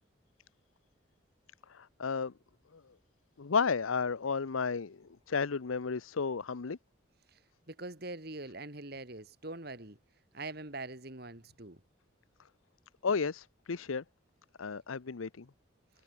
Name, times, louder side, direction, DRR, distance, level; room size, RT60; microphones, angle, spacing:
voice 1, 1.7-2.3 2.7-2.8 3.4-6.8 13.0-14.0 14.6-15.5, left 5 dB, 85° left, 0.7 m, -33 dB
voice 2, 7.7-10.0 10.3-11.8, right 2 dB, 50° right, 2.4 m, -43 dB
head